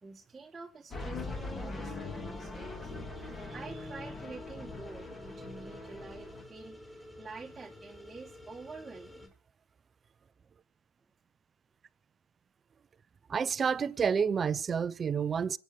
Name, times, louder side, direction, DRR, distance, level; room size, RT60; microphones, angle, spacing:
voice 1, 0.0-9.3, right 4 dB, 15° right, 1.9 m, -48 dB
sound 1, 0.9-6.4, left 3 dB, 30° left, 3.8 m, -41 dB
sound 2, 1.1-9.3, left 1 dB, 10° left, 6.6 m, -51 dB
voice 2, 13.3-15.6, right 6 dB, 35° right, 0.8 m, -29 dB
26.0 x 9.3 x 5.1 m
supercardioid pair, 95°, 0 cm